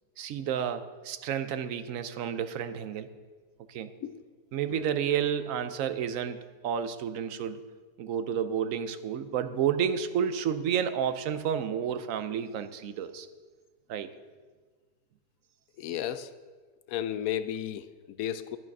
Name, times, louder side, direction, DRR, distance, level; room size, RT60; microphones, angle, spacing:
voice 1, 0.2-3.1 3.7-3.9 4.5-7.6 8.0-13.3 13.9-14.1, right 8 dB, 65° right, 11 dB, 0.9 m, -31 dB
voice 2, 15.8-16.3 16.9-18.6, left 10 dB, 70° left, 13 dB, 0.9 m, -33 dB
11.0 x 9.0 x 5.3 m, 1.4 s
omnidirectional pair, 1.7 m